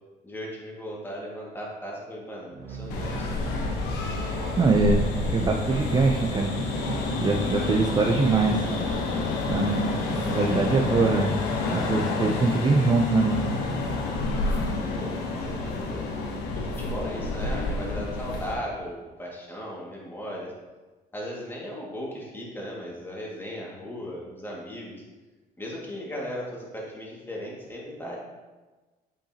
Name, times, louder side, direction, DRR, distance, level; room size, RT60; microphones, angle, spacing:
voice 1, 0.2-3.3 15.0-16.1 16.5-20.5 21.1-25.0 25.6-28.2, equal, 10° left, -4 dB, 2.0 m, -37 dB
sound 1, 2.5-9.3, right 6 dB, 65° right, 0.6 m, -38 dB
sound 2, 2.9-18.5, left 3 dB, 90° left, 1.1 m, -29 dB
voice 2, 4.6-6.5 7.2-8.6 9.5-11.3 11.7-13.4, right 3 dB, 25° right, 1 dB, 0.5 m, -23 dB
8.4 x 5.6 x 2.9 m, 1.2 s
cardioid pair, 110°, 17 cm